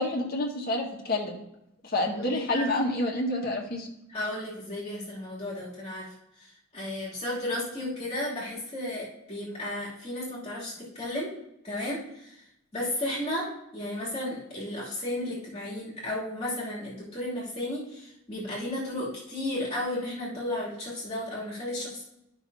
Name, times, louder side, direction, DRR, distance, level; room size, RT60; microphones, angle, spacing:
voice 1, 0.0-1.4 1.8-3.9, left 1 dB, 50° left, 0 dB, 1.6 m, -28 dB
voice 2, 2.1-2.6 4.1-11.3 11.6-12.4 12.7-22.0, left 1 dB, 30° left, -7 dB, 2.8 m, -34 dB
12.0 x 6.0 x 2.7 m, 0.81 s
head